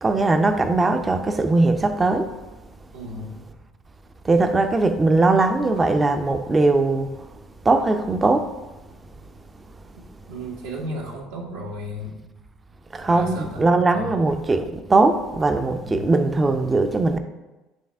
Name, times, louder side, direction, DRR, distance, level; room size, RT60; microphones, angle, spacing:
voice 1, 0.0-2.3 4.2-7.1 7.6-8.5 12.9-17.2, right 3 dB, 25° right, 0.6 m, -20 dB
voice 2, 2.9-3.4 10.3-12.2 13.0-13.6 13.9-14.3 15.8-16.1, equal, 80° right, 1.3 m, -34 dB
9.0 x 3.3 x 3.5 m
hypercardioid pair, 65°, 0 cm